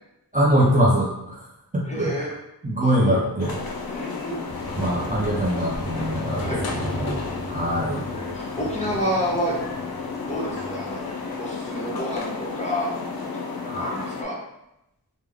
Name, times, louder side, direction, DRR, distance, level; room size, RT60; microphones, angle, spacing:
voice 1, 0.3-1.4 1.7-2.1 2.6-3.6 4.8-8.0 13.6-14.0, right 1 dB, 20° right, -6 dB, 0.6 m, -23 dB
voice 2, 1.9-2.3 2.9-3.2 3.9-4.4 6.4-6.6 8.1-9.6 10.2-11.0 11.4-12.9 13.6-14.4, equal, 20° left, -5 dB, 1.0 m, -29 dB
sound 1, 3.4-14.2, left 4 dB, 65° left, 0.5 m, -32 dB
Motorcycle, 4.5-12.1, right 2 dB, 85° right, 0.9 m, -37 dB
3.3 x 2.1 x 3.5 m, 0.87 s
wide cardioid pair, 55°, 39 cm